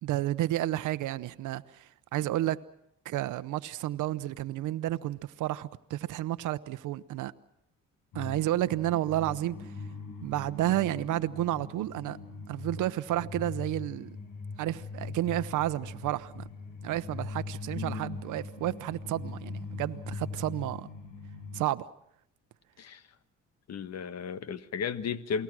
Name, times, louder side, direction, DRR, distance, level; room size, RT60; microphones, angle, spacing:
voice 1, 0.0-2.6 3.0-7.3 8.1-9.7 10.2-12.2 12.5-14.2 14.6-16.4 16.8-20.9 21.5-21.9, right 14 dB, 80° right, 0.8 m, -31 dB
sound 1, 8.1-21.7, left 4 dB, 85° left, 5.9 m, -41 dB
voice 2, 17.8-18.2 22.8-23.0 23.7-25.4, left 6 dB, 60° left, 1.5 m, -35 dB
28.5 x 19.0 x 6.1 m
cardioid pair, 90°, 30 cm